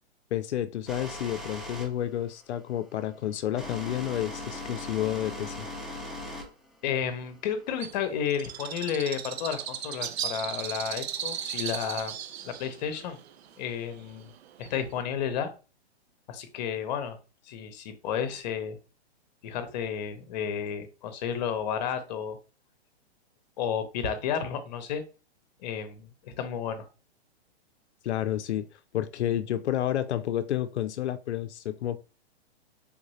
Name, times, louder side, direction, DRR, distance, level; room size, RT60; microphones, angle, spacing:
voice 1, 0.3-5.7 28.0-28.7 28.9-32.0, left 11 dB, 90° left, 11 dB, 0.5 m, -30 dB
sound 1, 0.9-7.8, left 1 dB, ahead, 0.6 m, -39 dB
voice 2, 6.8-12.2 12.4-13.2 13.6-14.3 14.6-15.5 16.3-17.2 17.5-18.8 19.4-22.4 23.6-25.0 25.6-26.9, left 8 dB, 40° left, 9 dB, 0.7 m, -32 dB
Bird, 7.8-15.0, right 9 dB, 70° right, 0.6 m, -37 dB
3.5 x 2.5 x 3.1 m, 0.34 s
hypercardioid pair, 150°, 33 cm